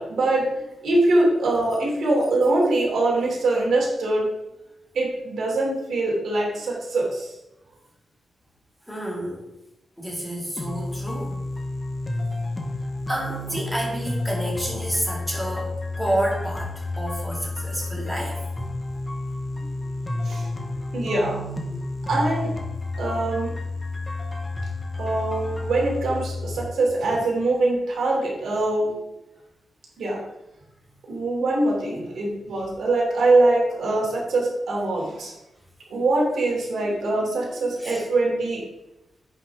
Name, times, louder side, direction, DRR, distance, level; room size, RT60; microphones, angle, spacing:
voice 1, 0.0-4.2 4.9-7.3 20.2-20.5 20.9-21.4 22.1-22.5 23.0-23.5 25.0-28.9 30.0-30.2 31.1-35.3 35.9-38.6, right 2 dB, 80° right, -2 dB, 3.0 m, -23 dB
voice 2, 8.9-9.4 10.0-11.4 13.1-18.4 37.8-38.1, right 1 dB, ahead, -4 dB, 2.2 m, -29 dB
sound 1, 10.6-26.6, left 2 dB, 20° left, 1.0 m, -30 dB
9.6 x 5.9 x 3.6 m, 0.90 s
wide cardioid pair, 140°, 0 cm